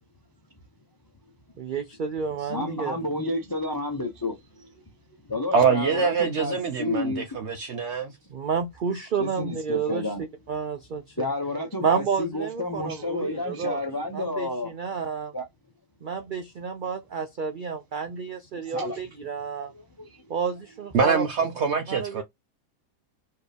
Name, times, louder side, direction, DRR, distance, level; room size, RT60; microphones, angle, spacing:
voice 1, 1.6-3.0 8.3-10.1 10.5-11.3 11.8-13.8 14.1-15.3 16.0-19.7 20.3-21.2 21.9-22.2, right 6 dB, 75° right, 0.4 m, -30 dB
voice 2, 2.5-4.4 5.3-7.3 9.2-10.2 11.2-14.7 15.3-15.4 18.7-19.0 20.0-20.1, left 2 dB, 25° left, 0.5 m, -30 dB
voice 3, 5.5-8.1 20.9-22.2, right 5 dB, 60° right, 0.9 m, -24 dB
4.4 x 2.7 x 3.4 m
omnidirectional pair, 1.5 m